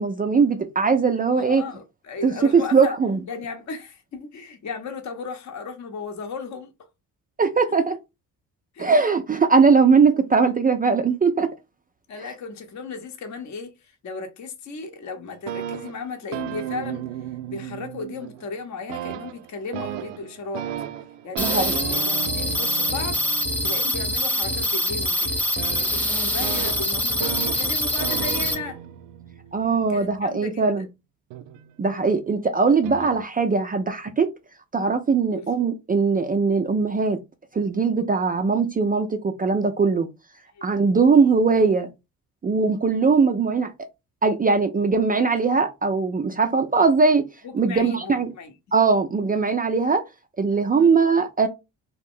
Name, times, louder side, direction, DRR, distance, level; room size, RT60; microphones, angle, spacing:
voice 1, 0.0-1.6 2.2-3.2 7.4-8.0 8.8-11.5 21.4-21.7 29.5-30.9 31.8-34.3 34.7-37.2 37.5-40.1 40.6-41.9 42.4-43.7 44.2-47.2 47.5-48.3 48.7-50.0 50.4-51.5, right 4 dB, 20° right, 0.4 m, -20 dB
voice 2, 1.4-2.9 3.3-6.7 8.7-8.9 12.1-17.0 17.5-20.7 21.2-28.8 29.9-30.8 35.3-35.5 40.5-40.6 47.4-48.5 50.8-51.0, left 4 dB, 40° left, 0.8 m, -35 dB
sound 1, 15.3-18.6 18.9-30.5 31.3-32.1 32.8-33.2, right 11 dB, 70° right, 0.5 m, -35 dB
sound 2, 21.4-28.5, left 1 dB, 5° left, 0.8 m, -24 dB
2.5 x 2.1 x 3.5 m
hypercardioid pair, 60°, 45 cm